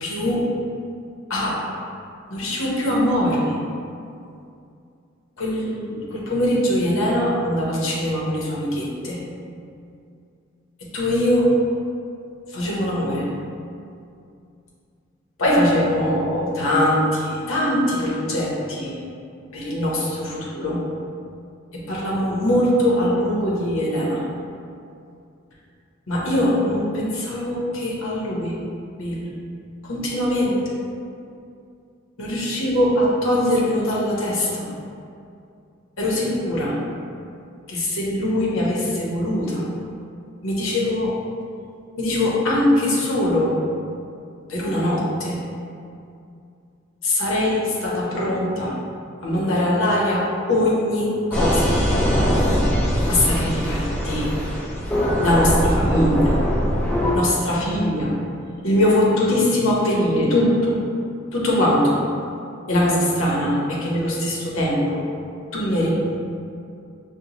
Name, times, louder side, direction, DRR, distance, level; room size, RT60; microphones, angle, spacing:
voice 1, 0.0-0.4 1.3-1.7 2.3-3.5 5.4-9.2 10.9-11.5 12.5-13.3 15.4-18.9 19.5-20.8 21.7-24.2 26.1-28.6 29.0-29.3 29.8-30.6 32.2-34.7 36.0-36.8 37.7-39.7 40.4-41.1 42.0-43.5 44.5-45.4 47.0-48.7 49.2-51.7 53.1-54.3 55.2-56.3 57.1-58.1 58.6-60.8 61.3-62.0 62.7-65.0 65.5-66.0, left 1 dB, 75° left, -5 dB, 0.8 m, -22 dB
sound 1, 51.3-57.2, equal, 10° left, 0.6 m, -21 dB
5.4 x 2.2 x 2.9 m, 2.5 s
head